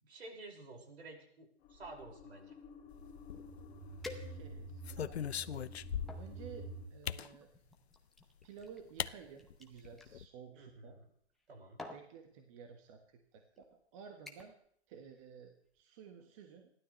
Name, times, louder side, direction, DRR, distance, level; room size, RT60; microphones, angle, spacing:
voice 1, 0.0-2.5 10.6-11.1 11.5-11.8, right 2 dB, 70° right, 1 dB, 5.5 m, -51 dB
sound 1, 1.6-6.9, right 1 dB, 20° left, 2.5 m, -49 dB
sound 2, 3.2-3.9 4.4-6.4 7.1-7.3 8.4-8.5 9.0-9.1 9.5-9.6 9.8-10.3, left 9 dB, 70° left, 0.7 m, -40 dB
sound 3, 4.0-4.8 5.4-6.3 7.2-10.1 11.2-11.5 11.8-12.1 13.0-13.1 13.6-13.8 14.3-14.7 15.0-15.3 15.7-15.8, left 2 dB, ahead, 0.7 m, -52 dB
voice 2, 4.2-5.5 6.2-7.5 8.4-11.0 11.9-14.5 14.9-16.7, right 6 dB, 30° right, 5 dB, 1.5 m, -54 dB
29.0 x 12.0 x 3.2 m, 0.64 s
hypercardioid pair, 150°, 33 cm